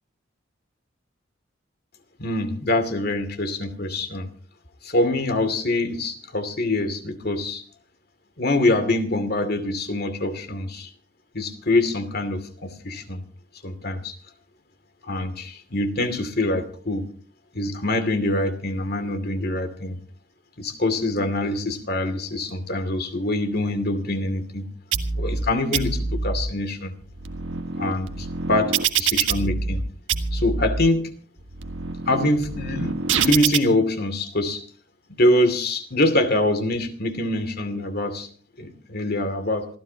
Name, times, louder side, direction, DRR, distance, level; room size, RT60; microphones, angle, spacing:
voice 1, 2.2-4.3 4.8-7.6 8.4-10.9 11.3-13.2 13.6-14.1 15.0-17.1 17.5-20.0 20.6-24.7 25.2-26.9 27.8-29.8 30.3-31.1 32.1-34.6 35.2-38.3 38.6-39.7, left 1 dB, 50° left, 9 dB, 2.5 m, -24 dB
sound 1, 24.9-25.4 25.7-26.4 27.0-29.8 30.1-30.8 31.4-33.6, right 5 dB, 70° right, 1.6 m, -25 dB
27.5 x 16.0 x 2.9 m, 0.41 s
head